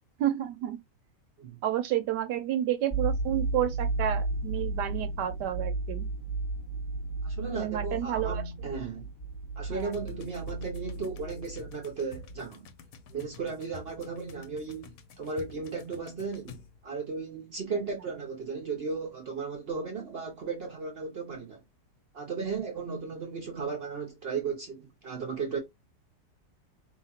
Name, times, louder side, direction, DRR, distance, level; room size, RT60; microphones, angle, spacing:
voice 1, 0.2-0.8 1.6-6.1 7.5-8.4 9.7-9.9, right 11 dB, 80° right, 1.2 m, -30 dB
sound 1, 2.9-11.9 12.2-12.4, right 3 dB, 20° left, 1.1 m, -34 dB
voice 2, 7.2-9.1 9.6-12.6 13.1-21.6 22.1-25.6, right 5 dB, 60° right, 0.6 m, -35 dB
sound 2, 9.7-17.0, left 4 dB, 65° left, 0.9 m, -50 dB
4.5 x 2.8 x 2.7 m
omnidirectional pair, 1.9 m